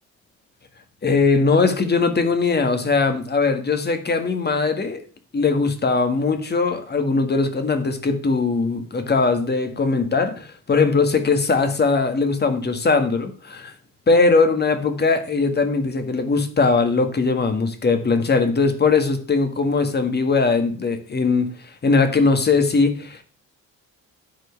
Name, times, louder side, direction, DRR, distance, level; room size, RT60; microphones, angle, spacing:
voice 1, 1.0-5.0 5.3-13.7 14.1-21.6 21.8-23.2, left 4 dB, 35° left, 1.8 m, -20 dB
10.5 x 4.6 x 7.1 m
cardioid pair, 90°, 30 cm